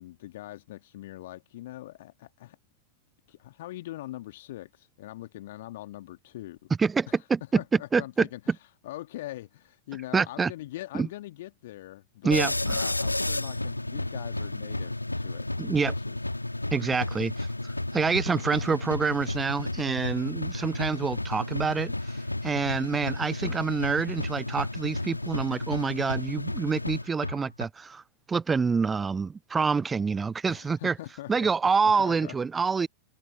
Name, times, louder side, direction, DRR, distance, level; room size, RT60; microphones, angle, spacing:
voice 1, 0.0-2.6 3.3-6.7 7.1-7.2 7.6-8.4 8.8-16.2 30.5-31.5 31.8-32.4, left 15 dB, 55° left, 2.0 m, -42 dB
voice 2, 6.8-7.6 7.9-8.3 10.1-10.5 10.9-11.1 12.2-12.8 15.6-15.9 16.7-28.0 28.3-31.0 31.3-32.9, right 5 dB, 15° right, 0.7 m, -27 dB
sound 1, 12.3-27.7, left 2 dB, 85° left, 1.9 m, -32 dB
figure-of-eight pair, 90°, 0 cm